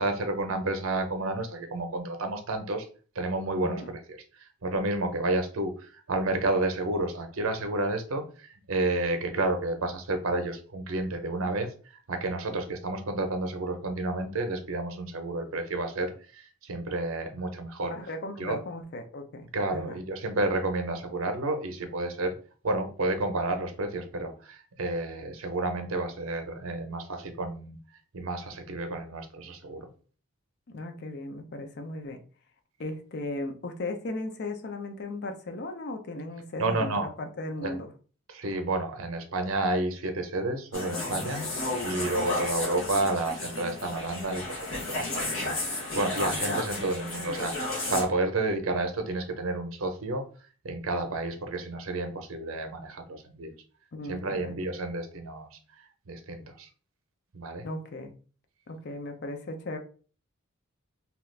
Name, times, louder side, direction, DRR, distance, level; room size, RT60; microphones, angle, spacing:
voice 1, 0.0-2.9 3.1-4.0 4.3-17.9 18.4-18.6 19.5-22.4 22.6-27.8 28.1-29.9 36.6-37.1 37.6-37.8 38.3-41.4 41.8-47.6 47.9-50.2 50.6-53.5 54.1-56.7 57.3-57.7, right 2 dB, 70° right, 0.6 m, -30 dB
voice 2, 17.8-20.0 30.7-32.2 32.8-37.9 41.4-41.7 53.9-54.6 57.6-58.1 58.7-59.8, left 2 dB, 50° left, 0.5 m, -37 dB
sound 1, 40.7-48.1, left 2 dB, 65° left, 1.2 m, -33 dB
2.9 x 2.4 x 3.2 m
head